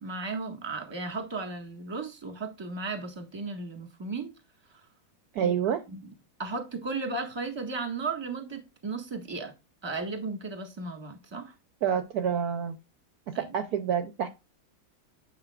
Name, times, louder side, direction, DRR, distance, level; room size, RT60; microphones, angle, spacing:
voice 1, 0.0-4.3 5.4-5.5 5.9-6.0 6.4-9.5 9.8-11.5 13.3-13.4, right 3 dB, 15° right, 1.4 m, -35 dB
voice 2, 5.3-5.8 11.8-12.8 13.4-14.3, right 8 dB, 65° right, 1.1 m, -28 dB
9.3 x 5.5 x 2.4 m
omnidirectional pair, 2.0 m